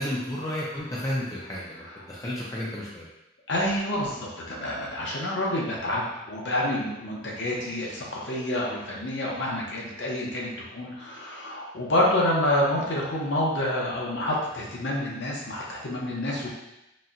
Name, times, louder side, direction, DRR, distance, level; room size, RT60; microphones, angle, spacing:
voice 1, 0.0-3.1, left 1 dB, 15° left, -7 dB, 0.4 m, -32 dB
voice 2, 3.5-16.5, left 1 dB, 60° left, -3 dB, 0.7 m, -28 dB
4.1 x 2.1 x 2.4 m, 0.91 s
head